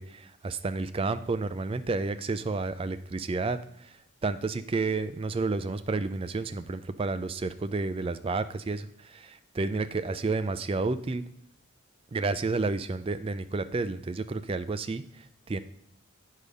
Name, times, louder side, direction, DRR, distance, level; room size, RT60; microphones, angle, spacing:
voice 1, 0.0-11.2 12.1-15.6, right 3 dB, 25° right, 11 dB, 0.3 m, -31 dB
8.4 x 5.3 x 4.8 m, 0.72 s
head